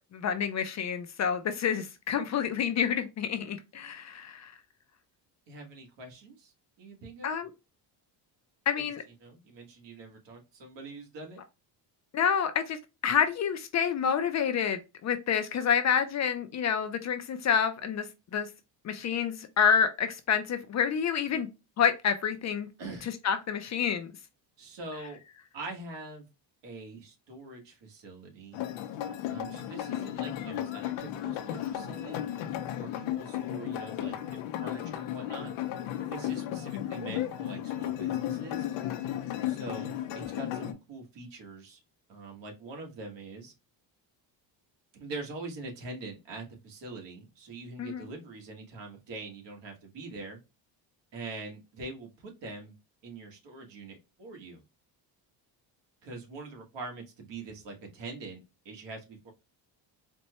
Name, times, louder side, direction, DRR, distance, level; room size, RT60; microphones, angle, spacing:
voice 1, 0.1-4.5 7.2-7.5 8.7-9.0 12.1-12.8 13.0-18.1 18.3-18.5 18.8-21.5 21.8-22.7 23.2-24.1 32.7-32.8 47.8-48.0, left 7 dB, 40° left, 0.4 m, -28 dB
voice 2, 5.5-7.3 8.7-8.9 9.2-11.4 22.8-23.1 24.6-25.2 25.5-26.3 26.6-28.6 29.3-32.2 32.8-34.2 34.6-35.5 36.1-38.7 39.5-41.8 42.1-43.5 44.9-50.4 51.1-52.7 53.0-54.6 56.0-59.3, right 3 dB, 65° right, 1.5 m, -43 dB
sound 1, 28.5-40.7, left 12 dB, 85° left, 0.7 m, -34 dB
4.2 x 2.2 x 2.8 m
cardioid pair, 130°, 45 cm